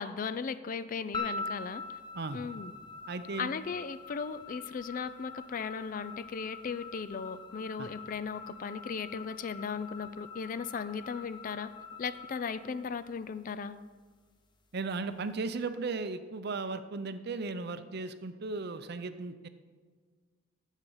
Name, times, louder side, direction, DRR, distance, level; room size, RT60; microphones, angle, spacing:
voice 1, 0.0-1.8 2.3-2.7 3.4-11.7 12.0-13.8, left 5 dB, 40° left, 14 dB, 0.4 m, -37 dB
sound 1, 1.1-13.4, left 4 dB, 25° left, 0.7 m, -44 dB
voice 2, 3.1-3.5 7.8-7.9 14.7-19.5, right 3 dB, 55° right, 10 dB, 0.6 m, -36 dB
9.7 x 7.4 x 5.5 m, 1.5 s
head